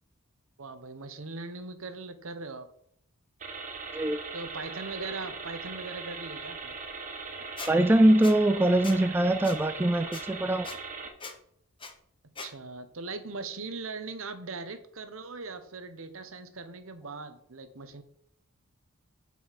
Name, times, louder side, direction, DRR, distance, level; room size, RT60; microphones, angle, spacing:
voice 1, 0.6-2.7 4.3-6.8 12.4-18.0, right 3 dB, 65° right, 10 dB, 1.0 m, -40 dB
sound 1, 3.4-11.1, right 4 dB, 40° right, 1.3 m, -40 dB
voice 2, 3.9-4.2 7.7-10.7, right 1 dB, 10° right, 10 dB, 0.3 m, -23 dB
Squeak, 7.6-7.7 8.2-8.3 8.8-9.0 9.4-9.6 10.1-10.2 10.6-10.8 11.2-11.3 11.8-11.9 12.4-12.5, left 4 dB, 25° left, 1.1 m, -40 dB
7.4 x 5.5 x 5.8 m, 0.68 s
head